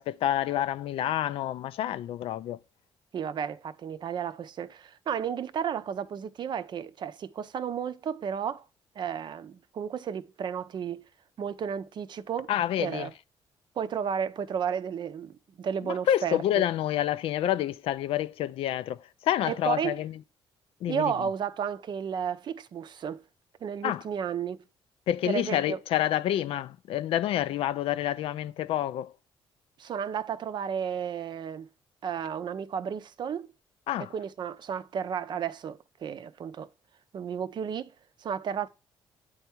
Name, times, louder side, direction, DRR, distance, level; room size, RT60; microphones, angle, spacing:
voice 1, 0.0-2.6 12.5-13.1 15.8-20.1 20.8-21.1 23.8-24.0 25.1-29.1 33.9-34.1, left 12 dB, 75° left, 0.4 m, -28 dB
voice 2, 3.1-8.6 9.0-11.0 11.4-12.5 12.8-13.1 13.8-16.6 19.5-20.0 20.9-23.2 23.6-24.6 25.2-25.8 29.8-31.7 32.0-33.5 34.1-36.7 37.1-37.9 38.2-38.7, right 7 dB, 50° right, 0.5 m, -33 dB
7.9 x 3.5 x 4.4 m
cardioid pair, 105°, 10 cm